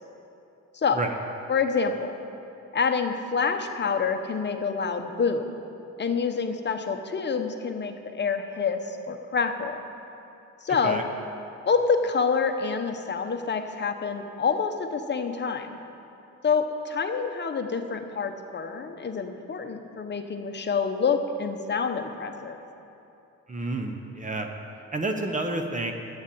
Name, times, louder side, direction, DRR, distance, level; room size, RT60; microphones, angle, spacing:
voice 1, 1.5-2.1 2.7-5.5 6.0-9.8 10.6-11.0 11.7-15.8 16.4-22.6, left 5 dB, 35° left, 6 dB, 1.0 m, -27 dB
voice 2, 23.5-24.5 24.9-25.9, right 2 dB, 25° right, 4 dB, 1.0 m, -29 dB
10.5 x 7.2 x 8.7 m, 2.8 s
cardioid pair, 90°, 30 cm